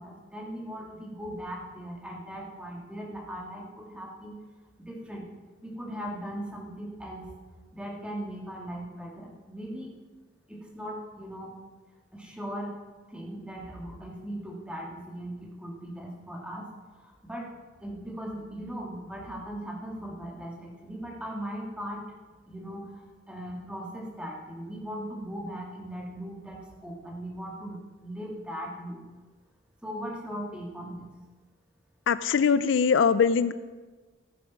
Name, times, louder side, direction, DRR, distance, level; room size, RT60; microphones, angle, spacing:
voice 1, 0.0-4.4 4.8-5.3 5.6-7.3 7.7-9.9 10.5-11.5 12.1-12.7 13.1-17.5 17.8-22.0 22.5-29.0 29.8-31.1, equal, 5° right, -2 dB, 2.1 m, -39 dB
voice 2, 32.1-33.5, left 6 dB, 70° left, 15 dB, 0.4 m, -22 dB
14.5 x 7.2 x 5.9 m, 1.3 s
head